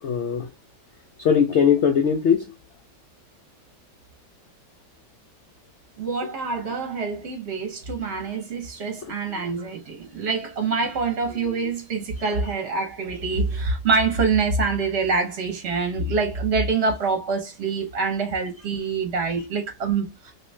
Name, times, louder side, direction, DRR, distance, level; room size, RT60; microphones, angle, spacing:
voice 1, 0.0-0.5 1.2-2.5 9.0-9.1, left 7 dB, 85° left, 0.6 m, -20 dB
voice 2, 6.0-20.3, right 4 dB, 45° right, 0.9 m, -25 dB
3.1 x 2.8 x 3.1 m
omnidirectional pair, 1.9 m